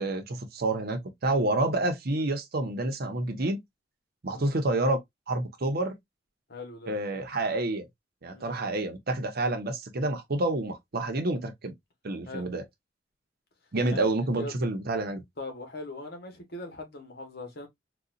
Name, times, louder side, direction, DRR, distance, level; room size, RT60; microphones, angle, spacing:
voice 1, 0.0-3.6 4.2-5.0 5.3-6.0 6.9-7.8 8.2-11.7 12.0-12.6 13.7-15.2, right 2 dB, 55° right, 0.8 m, -28 dB
voice 2, 6.5-6.9 8.3-8.6 12.3-12.5 13.9-14.1 14.4-14.5 15.4-17.7, left 2 dB, 60° left, 1.1 m, -40 dB
3.9 x 2.3 x 2.4 m
head